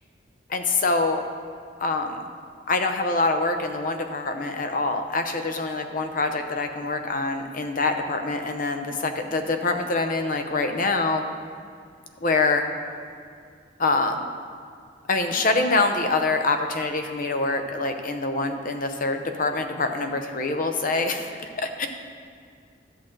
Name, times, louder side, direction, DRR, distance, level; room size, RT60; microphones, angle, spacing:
voice 1, 0.5-1.3 1.8-2.2 2.7-11.2 12.2-12.6 13.8-14.3 15.1-21.9, left 3 dB, 45° left, 6 dB, 0.7 m, -25 dB
11.0 x 7.6 x 3.8 m, 2.3 s
head